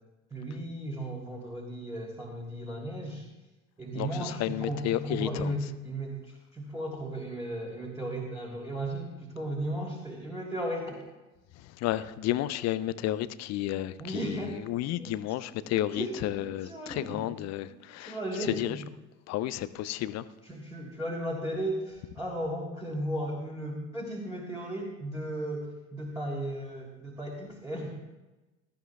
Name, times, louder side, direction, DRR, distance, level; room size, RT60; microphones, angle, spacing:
voice 1, 0.3-3.2 3.8-11.0 14.0-14.6 15.0-15.2 15.6-17.3 17.6-17.7 18.0-18.8 20.4-28.0, right 1 dB, 10° right, 3.1 m, -35 dB
voice 2, 3.9-5.6 11.6-18.8 19.3-20.3, left 13 dB, 45° left, 0.7 m, -32 dB
18.5 x 14.5 x 2.4 m
figure-of-eight pair, 65°, 37 cm